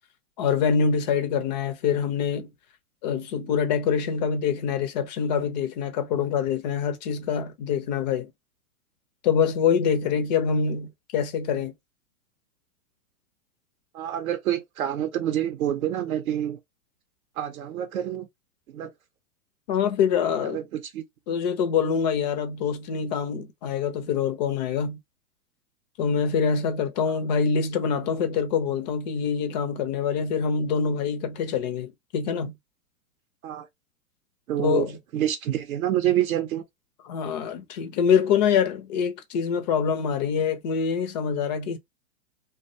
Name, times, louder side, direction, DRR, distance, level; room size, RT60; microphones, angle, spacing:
voice 1, 0.4-2.5 3.0-8.3 9.2-11.7 19.7-20.6 21.3-25.0 26.0-32.5 34.6-35.0 37.0-41.8, left 6 dB, 30° left, 0.4 m, -25 dB
voice 2, 13.9-16.6 17.4-18.3 18.7-18.9 20.4-21.0 33.4-33.7 34.5-34.9 35.1-36.6, right 11 dB, 70° right, 0.6 m, -27 dB
2.2 x 2.1 x 2.6 m
hypercardioid pair, 125°, 44 cm